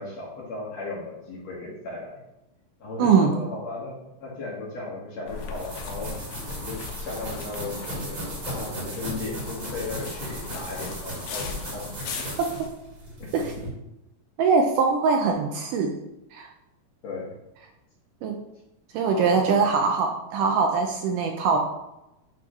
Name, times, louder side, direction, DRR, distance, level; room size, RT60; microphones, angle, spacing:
voice 1, 0.0-2.2 2.8-6.2 6.6-12.4 13.2-13.3 17.0-17.3 19.1-19.6, left 3 dB, 55° left, -4 dB, 2.2 m, -36 dB
voice 2, 3.0-3.3 13.3-13.5 14.4-15.9 16.3-16.5 18.2-18.4 18.9-21.6, right 5 dB, 80° right, 3 dB, 2.0 m, -22 dB
sound 1, 5.3-12.7, left 5 dB, 75° left, 1.6 m, -38 dB
sound 2, 5.4-13.7, right 1 dB, 40° right, 2.8 m, -37 dB
10.5 x 3.7 x 3.0 m, 0.91 s
omnidirectional pair, 4.1 m